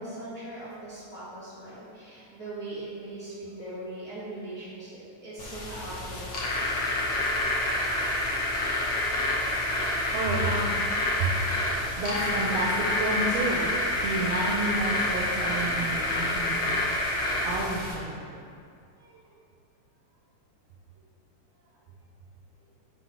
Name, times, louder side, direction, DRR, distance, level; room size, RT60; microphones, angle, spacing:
voice 1, 0.0-6.6, right 2 dB, 25° left, -10 dB, 1.5 m, -40 dB
sound 1, 5.4-17.9, left 1 dB, 65° left, 1.1 m, -28 dB
voice 2, 10.1-10.8 11.2-16.7 17.4-18.3 19.0-19.2, right 2 dB, 75° right, -3 dB, 1.5 m, -31 dB
5.4 x 4.3 x 6.1 m, 2.4 s
omnidirectional pair, 3.5 m